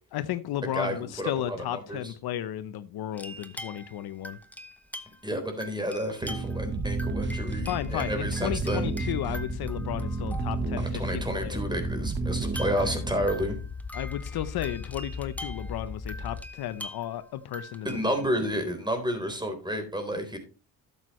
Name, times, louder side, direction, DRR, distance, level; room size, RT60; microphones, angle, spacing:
voice 1, 0.1-4.4 7.7-11.6 13.9-18.3, left 12 dB, 70° left, 0.8 m, -34 dB
voice 2, 0.6-2.1 5.2-8.9 10.8-13.6 17.8-20.4, equal, 10° right, 3.6 m, -31 dB
sound 1, 3.1-5.3 5.6-6.7 7.0-10.8 11.4-11.5 12.3-18.3, left 1 dB, 5° left, 1.1 m, -44 dB
sound 2, 6.2-13.3, right 4 dB, 30° right, 1.2 m, -32 dB
sound 3, 6.6-16.5, left 5 dB, 25° left, 0.8 m, -38 dB
12.0 x 8.1 x 3.1 m
cardioid pair, 75°, 38 cm